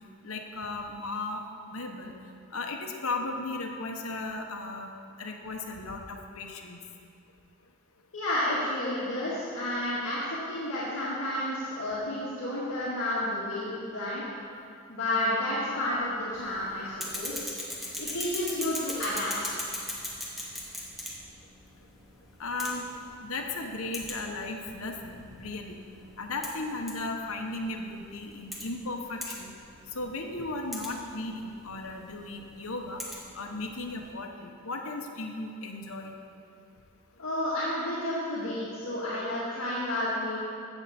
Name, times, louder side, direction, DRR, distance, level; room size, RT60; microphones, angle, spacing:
voice 1, 0.2-1.4 1.7-2.2 2.5-4.9 5.2-6.8 22.4-22.9 23.2-25.8 26.2-29.5 29.9-33.0 33.3-36.1, left 2 dB, 80° left, 2 dB, 1.1 m, -36 dB
voice 2, 8.1-14.2 14.9-17.5 18.0-19.3 19.6-19.7 37.2-40.4, left 1 dB, 60° left, -10 dB, 2.0 m, -31 dB
sound 1, 16.3-34.1, left 1 dB, ahead, 1.3 m, -41 dB
15.0 x 7.3 x 4.3 m, 2.5 s
head